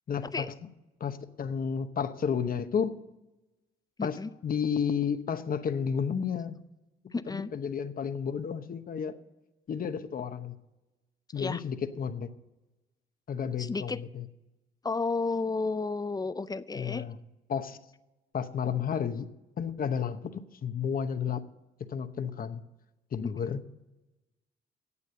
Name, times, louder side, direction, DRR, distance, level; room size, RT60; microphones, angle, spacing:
voice 1, 0.1-0.5 1.0-3.0 4.0-6.6 7.3-9.1 9.7-10.6 11.3-12.3 13.3-14.2 16.7-17.2 17.5-17.8 18.3-19.3 19.6-21.4 21.9-22.6 23.1-23.6, left 7 dB, 45° left, 10 dB, 0.9 m, -32 dB
voice 2, 4.0-4.3 7.1-7.5 11.4-11.6 13.6-14.0 14.8-17.0 23.2-23.6, left 3 dB, 20° left, 14 dB, 0.5 m, -32 dB
9.7 x 8.3 x 6.5 m, 1.0 s
cardioid pair, 90°, 20 cm